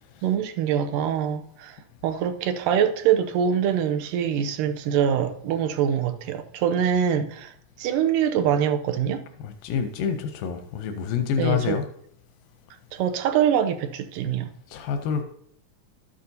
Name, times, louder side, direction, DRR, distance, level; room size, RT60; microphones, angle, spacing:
voice 1, 0.2-1.8 2.0-7.5 7.8-9.2 11.4-11.8 12.9-14.5, right 8 dB, 80° right, 2.2 m, -24 dB
voice 2, 9.4-11.9 14.7-15.2, left 7 dB, 85° left, 2.4 m, -27 dB
12.5 x 8.8 x 2.7 m
omnidirectional pair, 3.9 m